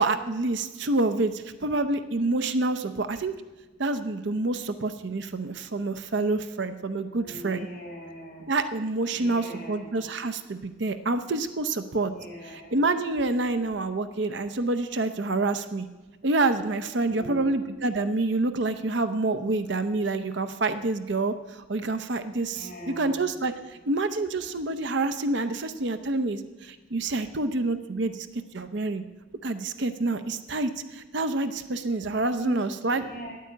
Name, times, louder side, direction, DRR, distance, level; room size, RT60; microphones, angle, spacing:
voice 1, 0.0-3.3 3.8-7.7 8.5-12.1 12.7-15.9 16.2-23.5 23.9-28.3 28.5-29.0 29.4-33.0, right 2 dB, 55° right, 10 dB, 0.7 m, -27 dB
voice 2, 7.1-8.5 9.1-10.1 11.9-12.8 17.0-17.5 22.5-23.3 32.4-32.6 32.9-33.3, left 1 dB, 45° left, -2 dB, 4.4 m, -40 dB
10.0 x 8.5 x 8.5 m, 1.2 s
head